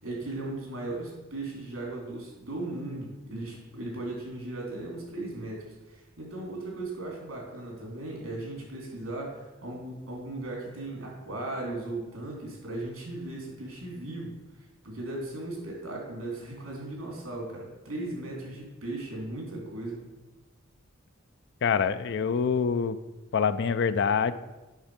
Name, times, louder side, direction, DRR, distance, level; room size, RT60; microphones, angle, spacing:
voice 1, 0.0-14.3 14.8-20.1, right 2 dB, 80° right, -2 dB, 3.4 m, -37 dB
voice 2, 21.6-23.0 23.3-24.3, left 6 dB, 60° left, 14 dB, 0.4 m, -25 dB
8.1 x 6.2 x 5.0 m, 1.1 s
head